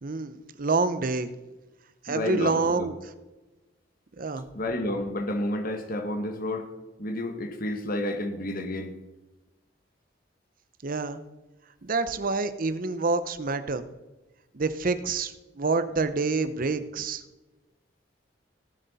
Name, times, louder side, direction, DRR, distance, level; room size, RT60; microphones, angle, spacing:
voice 1, 0.0-1.3 2.0-3.0 4.2-4.4 10.8-11.2 11.8-13.8 14.5-17.2, right 3 dB, 50° right, 12 dB, 0.7 m, -27 dB
voice 2, 2.1-2.9 4.5-6.7 7.0-8.9, left 1 dB, 50° left, 6 dB, 1.3 m, -30 dB
18.0 x 7.6 x 4.1 m, 1.1 s
head